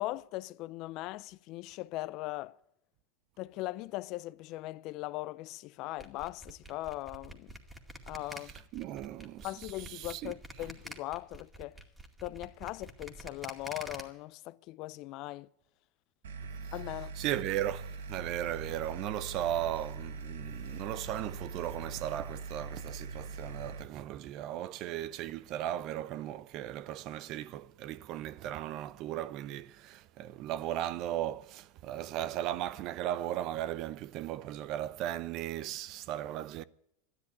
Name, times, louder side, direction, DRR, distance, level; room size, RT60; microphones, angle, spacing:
voice 1, 0.0-2.6 3.4-7.6 8.1-8.5 9.4-11.8 12.2-15.5 16.7-17.1, left 18 dB, 55° left, 0.5 m, -39 dB
sound 1, 6.0-14.0, right 1 dB, 10° right, 2.1 m, -47 dB
voice 2, 8.7-10.7 16.6-16.7 17.2-36.6, right 12 dB, 50° right, 0.6 m, -37 dB
sound 2, 16.2-23.8, right 4 dB, 90° right, 1.2 m, -42 dB
12.5 x 11.0 x 9.4 m
hypercardioid pair, 110°, 0 cm